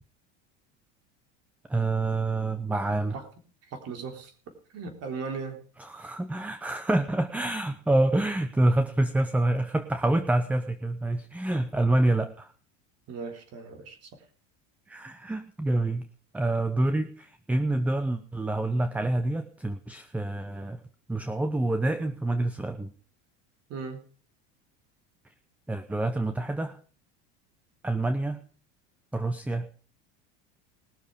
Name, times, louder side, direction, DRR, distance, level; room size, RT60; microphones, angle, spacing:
voice 1, 1.7-3.2 5.8-12.5 14.9-16.0 16.3-20.8 21.1-22.9 25.7-26.8 27.8-28.4 29.1-29.7, right 2 dB, 5° right, 10 dB, 0.8 m, -27 dB
voice 2, 3.6-4.3 4.7-5.6 13.1-14.1 23.7-24.0, right 5 dB, 45° right, 5 dB, 3.7 m, -37 dB
20.0 x 7.0 x 5.0 m, 0.40 s
supercardioid pair, 115°, 33 cm